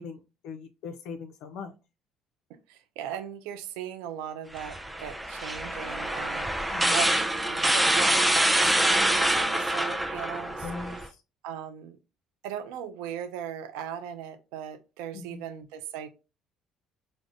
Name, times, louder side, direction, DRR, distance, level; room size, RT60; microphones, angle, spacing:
voice 1, 0.0-1.8 6.7-7.0 10.6-11.2 15.1-15.5, left 4 dB, 75° left, 0.3 m, -40 dB
voice 2, 2.7-10.7 11.4-12.0 12.4-16.1, right 9 dB, 85° right, 0.3 m, -38 dB
sound 1, 4.6-11.1, right 1 dB, 5° right, 0.4 m, -25 dB
4.7 x 2.0 x 2.4 m
supercardioid pair, 80°, 0 cm